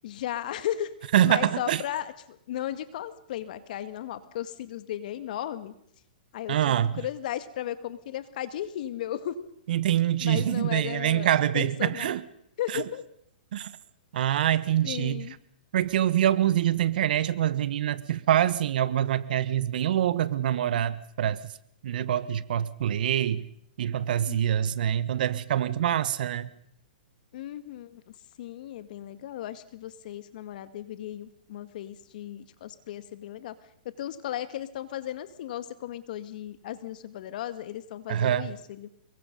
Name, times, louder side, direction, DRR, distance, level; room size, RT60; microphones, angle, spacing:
voice 1, 0.0-0.9 1.2-5.7 6.3-9.5 10.2-11.3 11.5-12.2 12.6-13.0 14.8-15.3 24.3-24.4 27.3-28.0 28.4-33.5 34.0-38.9, left 12 dB, 55° left, 2.0 m, -35 dB
voice 2, 1.1-1.8 6.5-6.9 9.7-12.2 12.7-12.8 13.5-13.7 14.1-15.3 15.7-21.4 21.8-23.5 23.8-26.5 38.1-38.5, right 11 dB, 65° right, 1.3 m, -25 dB
25.0 x 22.5 x 5.5 m
hypercardioid pair, 140°, 5 cm